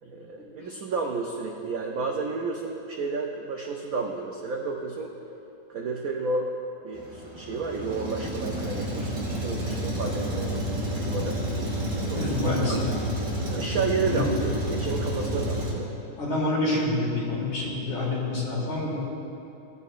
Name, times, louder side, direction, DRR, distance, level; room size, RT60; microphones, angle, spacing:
voice 1, 0.0-5.1 5.7-6.6 6.8-9.1 9.4-11.4 12.0-12.8 13.5-15.9, right 4 dB, 75° right, 1 dB, 0.8 m, -31 dB
Truck, 6.9-15.7, equal, 45° right, 2.2 m, -30 dB
voice 2, 9.0-9.4 12.1-12.9 14.1-14.3 16.2-19.0, left 2 dB, 75° left, -5 dB, 2.8 m, -27 dB
16.0 x 8.2 x 2.5 m, 3.0 s
omnidirectional pair, 2.2 m